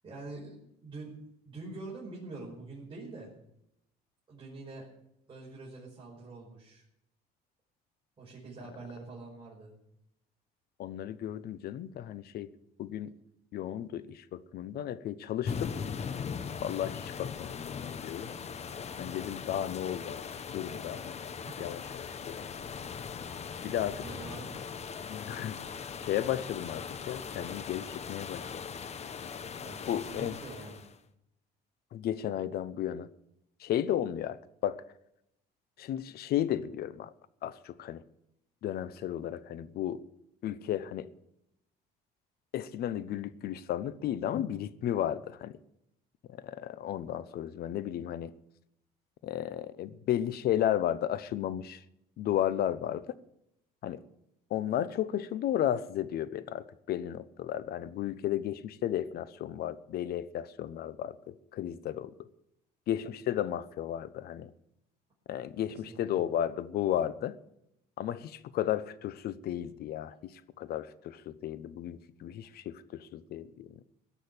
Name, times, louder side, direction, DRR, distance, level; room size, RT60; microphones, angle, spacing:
voice 1, 0.0-1.2 1.4-3.3 4.3-4.9 5.3-6.8 8.2-9.8 21.4-21.7 23.5-24.6 29.6-30.9 65.7-66.2 72.4-72.5, right 3 dB, 30° right, 5.1 m, -45 dB
voice 2, 10.8-12.5 12.8-13.1 13.5-15.7 16.6-18.3 19.0-20.2 20.5-21.2 21.6-22.4 23.6-24.0 25.1-25.6 26.0-28.5 29.9-30.4 31.9-33.1 33.6-34.8 35.8-37.1 37.4-38.0 38.6-40.0 40.4-41.1 42.5-45.6 46.3-48.3 49.2-51.8 52.2-53.1 53.8-54.0 54.5-62.3 62.9-64.5 65.3-67.4 68.0-70.3 70.6-73.8, left 11 dB, 65° left, 0.9 m, -34 dB
sound 1, 15.4-31.0, left 6 dB, 40° left, 1.1 m, -40 dB
17.0 x 6.6 x 9.9 m
cardioid pair, 110°, 17 cm